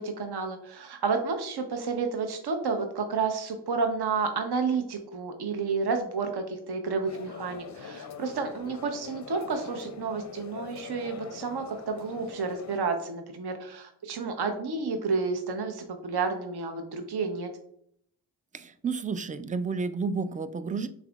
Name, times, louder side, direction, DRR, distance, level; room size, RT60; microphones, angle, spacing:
voice 1, 0.0-17.5, right 4 dB, 55° right, 6 dB, 0.8 m, -30 dB
sound 1, 7.1-12.8, left 6 dB, 35° left, 0.5 m, -43 dB
voice 2, 18.5-20.9, right 4 dB, 20° right, 12 dB, 0.3 m, -31 dB
5.7 x 3.7 x 2.3 m, 0.69 s
cardioid pair, 50°, 49 cm